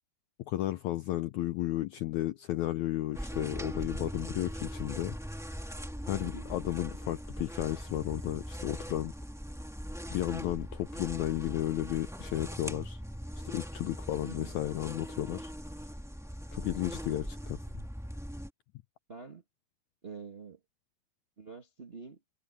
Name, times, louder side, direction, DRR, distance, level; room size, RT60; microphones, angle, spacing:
voice 1, 0.5-5.2 6.0-9.1 10.1-13.0 13.4-15.5 16.5-17.6, left 14 dB, 80° left, 1.6 m, -33 dB
sound 1, 3.1-18.5, equal, ahead, 1.1 m, -40 dB
voice 2, 6.2-6.5 14.2-14.5 19.1-19.4 20.0-20.6 21.4-22.2, right 5 dB, 70° right, 0.5 m, -46 dB
omnidirectional pair, 4.1 m